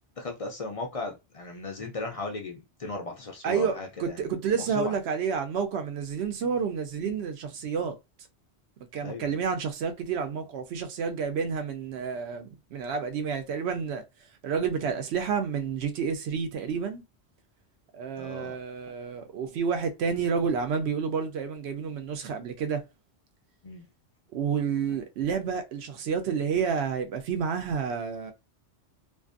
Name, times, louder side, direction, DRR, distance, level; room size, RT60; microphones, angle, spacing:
voice 1, 0.2-5.0 7.0-7.2 9.0-9.4 14.7-14.9 18.2-18.6 23.6-23.9, left 2 dB, 50° left, 0.4 m, -37 dB
voice 2, 3.4-8.0 8.9-14.0 14.4-17.0 17.9-22.8 24.3-28.3, right 6 dB, 70° right, 0.8 m, -30 dB
2.5 x 2.4 x 2.4 m
omnidirectional pair, 1.1 m